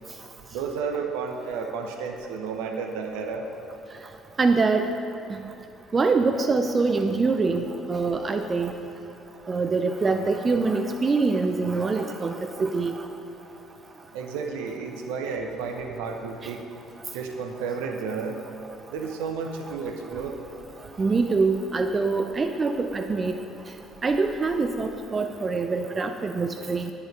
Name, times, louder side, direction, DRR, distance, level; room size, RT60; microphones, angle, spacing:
voice 1, 0.5-3.5 14.1-16.6 17.1-18.4 18.9-20.4, right 5 dB, 65° right, 4 dB, 1.0 m, -32 dB
voice 2, 4.4-4.9 5.3-5.4 5.9-8.7 9.5-13.0 16.4-16.5 21.0-23.3 24.0-26.9, right 4 dB, 30° right, 7 dB, 0.6 m, -24 dB
10.5 x 9.8 x 5.2 m, 2.6 s
figure-of-eight pair, 55°, 0 cm